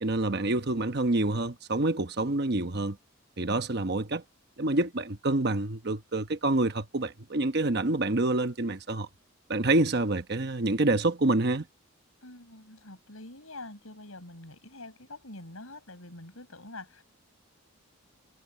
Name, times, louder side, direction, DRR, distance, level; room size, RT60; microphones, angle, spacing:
voice 1, 0.0-3.0 3.4-4.2 4.6-9.1 9.5-11.7, right 2 dB, 50° right, 1.0 m, -27 dB
voice 2, 12.2-17.0, left 2 dB, 75° left, 6.4 m, -45 dB
head